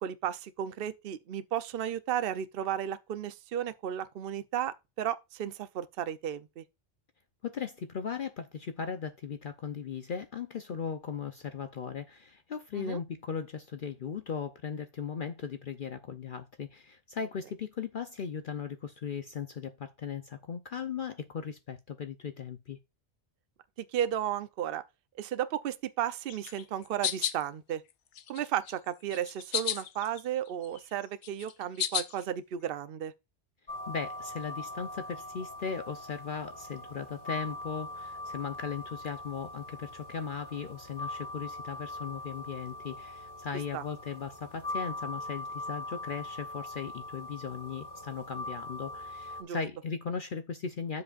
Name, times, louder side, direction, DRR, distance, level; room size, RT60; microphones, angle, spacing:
voice 1, 0.0-6.6 12.7-13.0 23.9-24.8 25.2-27.8 28.3-33.1 43.7-43.8 49.4-49.6, right 10 dB, 55° right, 0.8 m, -34 dB
voice 2, 7.4-22.8 33.9-51.0, left 6 dB, 50° left, 0.7 m, -37 dB
sound 1, 26.3-27.4 27.9-28.7 29.1-30.2 30.5-32.2, left 9 dB, 75° left, 1.0 m, -33 dB
sound 2, 33.7-49.4, left 1 dB, 35° left, 2.3 m, -41 dB
9.5 x 7.6 x 2.4 m
omnidirectional pair, 1.2 m